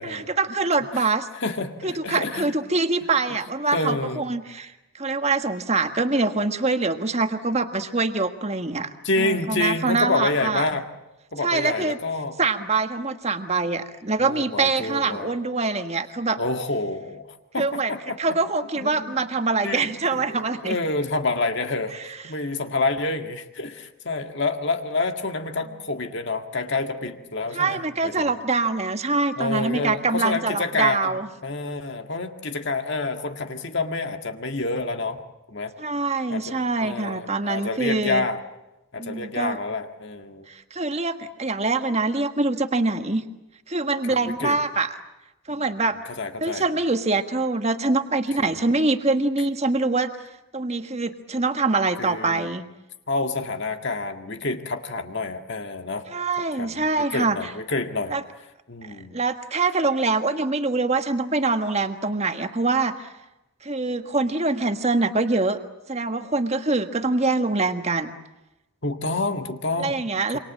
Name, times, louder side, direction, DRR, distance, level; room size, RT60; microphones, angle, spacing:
voice 1, 0.0-1.3 1.8-4.7 5.0-10.7 11.4-12.0 12.4-16.4 17.6-17.9 18.2-20.8 27.5-31.3 35.8-38.2 39.0-39.6 40.5-43.2 43.7-44.9 45.5-46.0 46.4-50.1 50.5-52.6 56.1-57.4 58.1-58.2 59.1-62.9 63.6-65.6 65.9-68.1 69.8-70.4, right 3 dB, 30° right, 8 dB, 1.5 m, -24 dB
voice 2, 0.9-2.5 3.7-4.2 9.0-10.9 11.3-12.3 14.2-15.4 16.4-18.4 18.8-19.2 19.6-21.9 22.2-28.4 29.4-35.2 35.5-35.7 36.3-38.4 38.9-40.5 44.1-44.6 45.5-45.6 46.2-46.6 48.4-48.7 52.0-52.5 53.1-56.1 56.5-58.2 58.7-59.2 68.8-70.1 70.3-70.4, left 3 dB, 55° left, 6 dB, 1.8 m, -28 dB
28.0 x 25.0 x 7.4 m, 0.96 s
head